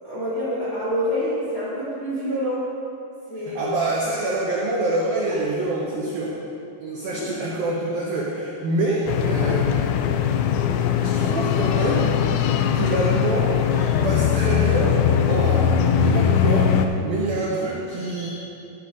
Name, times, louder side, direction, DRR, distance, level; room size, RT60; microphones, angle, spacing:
voice 1, 0.0-2.7 3.3-3.7 7.2-7.3, equal, 30° left, -10 dB, 2.5 m, -27 dB
voice 2, 3.4-6.3 6.8-10.0 11.0-12.2 12.7-15.0 15.3-18.3, right 2 dB, 90° right, -4 dB, 2.0 m, -26 dB
sound 1, 9.1-16.9, left 8 dB, 90° left, 3.1 m, -20 dB
13.0 x 11.0 x 2.6 m, 2.6 s
omnidirectional pair, 5.6 m